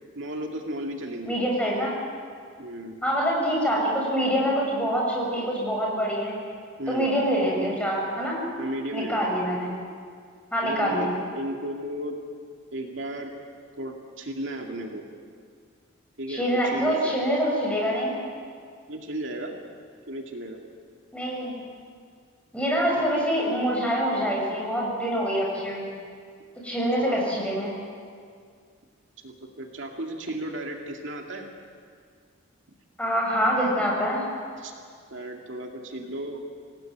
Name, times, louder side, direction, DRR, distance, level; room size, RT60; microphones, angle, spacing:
voice 1, 0.2-1.4 2.6-3.0 6.8-7.1 8.6-9.3 10.6-12.2 12.7-13.3 13.8-15.0 16.2-17.2 18.9-19.5 20.1-20.6 23.0-23.1 27.0-27.2 29.2-31.5 34.6-34.7 35.1-36.4, right 1 dB, 65° right, 1 dB, 2.3 m, -34 dB
voice 2, 1.3-1.9 3.0-6.3 6.9-8.4 8.9-9.7 10.5-11.1 16.3-18.1 21.1-21.6 22.5-25.9 26.6-27.7 33.0-34.2, equal, 5° left, -3 dB, 7.2 m, -25 dB
27.0 x 18.5 x 9.2 m, 2.1 s
head